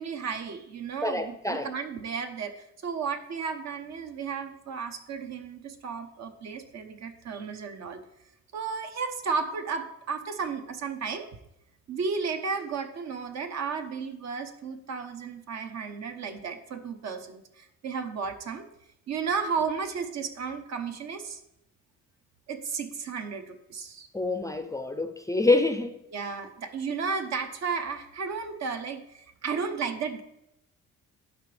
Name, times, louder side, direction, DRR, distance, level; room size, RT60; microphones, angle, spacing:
voice 1, 0.0-8.0 8.5-11.3 11.9-18.7 19.1-21.4 22.5-24.1 26.1-30.2, right 5 dB, 60° right, 0.9 m, -33 dB
voice 2, 1.0-1.7 24.1-26.0, left 2 dB, 10° left, 0.5 m, -26 dB
11.5 x 4.8 x 3.4 m
cardioid pair, 90°, 30 cm